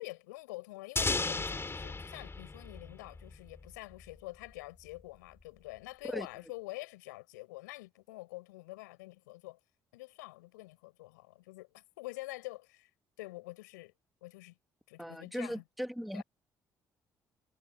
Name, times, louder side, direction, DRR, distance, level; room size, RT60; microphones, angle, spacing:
voice 1, 0.0-9.6 9.9-12.9 13.2-13.9 14.2-14.6 14.9-15.6 16.1-16.2, left 21 dB, 90° left, 6.1 m, -46 dB
sound 1, 1.0-3.7, left 3 dB, 25° left, 3.6 m, -35 dB
voice 2, 15.0-16.2, equal, ahead, 2.6 m, -38 dB
hypercardioid pair, 55°, 9 cm